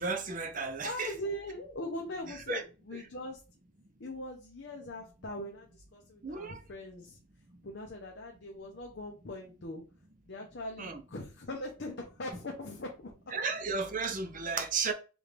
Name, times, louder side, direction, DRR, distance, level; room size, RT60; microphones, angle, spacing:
voice 1, 0.0-1.1 2.5-2.6 6.2-6.6 10.8-11.0 13.3-14.9, right 4 dB, 40° right, 0.7 m, -33 dB
voice 2, 0.8-3.4 4.0-7.2 7.6-9.8 10.2-13.1, left 1 dB, 60° left, 0.8 m, -41 dB
4.9 x 2.5 x 3.3 m
head